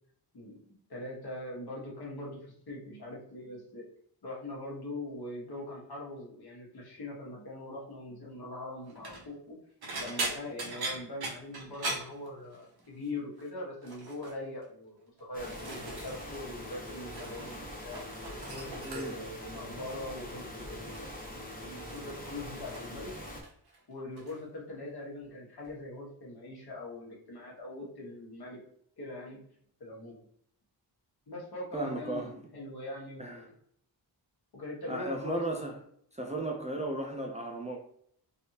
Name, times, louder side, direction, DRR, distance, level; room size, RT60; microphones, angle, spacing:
voice 1, 0.3-2.4 2.7-3.9 4.2-9.5 10.0-18.0 18.5-23.1 23.9-28.6 29.0-29.4 29.8-30.2 31.3-33.5 34.5-35.4, left 2 dB, 60° left, -3 dB, 1.3 m, -42 dB
sound 1, 8.9-9.3 9.8-12.9 13.1-13.5 13.8-14.4 15.0-16.4 16.7-17.6 17.8-19.4 20.2-20.5 20.9-23.0 23.3-23.8 24.2-24.4 25.6-25.7, right 2 dB, 60° right, 0.8 m, -40 dB
sound 2, 15.3-23.4, left 1 dB, 20° left, 0.8 m, -43 dB
voice 2, 18.8-19.2 31.7-32.4 33.2-33.5 34.9-35.8 36.1-37.8, right 2 dB, 15° right, 0 dB, 0.4 m, -35 dB
3.4 x 2.6 x 2.8 m, 0.65 s
wide cardioid pair, 95°, 43 cm